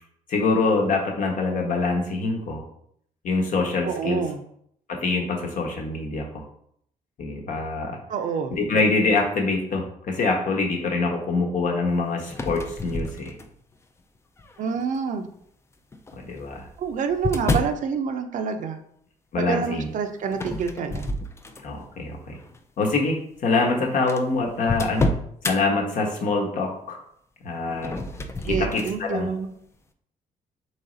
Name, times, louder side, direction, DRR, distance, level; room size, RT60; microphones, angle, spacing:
voice 1, 0.3-2.6 3.2-4.2 4.9-6.4 7.2-8.0 8.5-13.4 16.1-16.7 19.3-19.9 21.6-22.4 22.8-25.2 25.5-27.0 27.4-28.0 28.4-29.3, left 3 dB, 60° left, 1 dB, 1.1 m, -25 dB
voice 2, 3.8-4.4 8.1-8.5 14.6-15.3 16.8-18.8 19.4-21.1 28.4-29.5, right 6 dB, 60° right, 7 dB, 0.5 m, -27 dB
sound 1, 12.3-13.7 14.4-14.8 15.9-17.8 20.3-21.9 22.3-22.6 23.4-23.5 23.6-23.7 24.1-25.6 27.7-29.0, left 1 dB, 20° left, 0.4 m, -29 dB
4.1 x 3.1 x 3.8 m, 0.69 s
cardioid pair, 110°, 15 cm